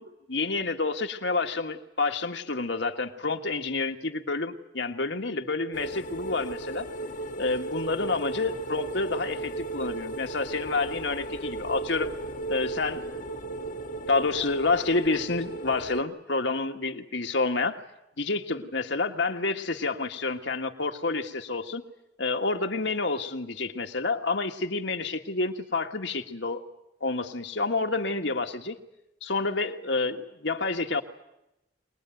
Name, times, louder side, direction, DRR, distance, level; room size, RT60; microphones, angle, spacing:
voice 1, 0.0-6.9 7.4-12.1 12.5-13.1 13.5-13.6 14.1-17.8 18.2-21.8 22.2-26.6 27.0-28.8 29.2-31.0, left 3 dB, 70° left, 5 dB, 1.8 m, -29 dB
sound 1, 5.7-16.0, right 2 dB, 45° left, 1.2 m, -35 dB
24.5 x 20.5 x 9.2 m, 0.88 s
head